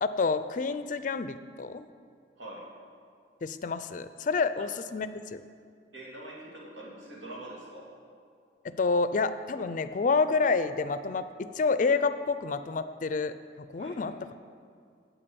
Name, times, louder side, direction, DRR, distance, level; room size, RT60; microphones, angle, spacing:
voice 1, 0.0-1.9 3.4-5.4 8.6-14.1, left 4 dB, 45° left, 12 dB, 0.4 m, -28 dB
voice 2, 2.4-2.7 4.5-4.6 5.9-7.9 13.8-14.0, right 1 dB, 90° right, -4 dB, 2.8 m, -44 dB
8.7 x 8.5 x 6.9 m, 2.3 s
head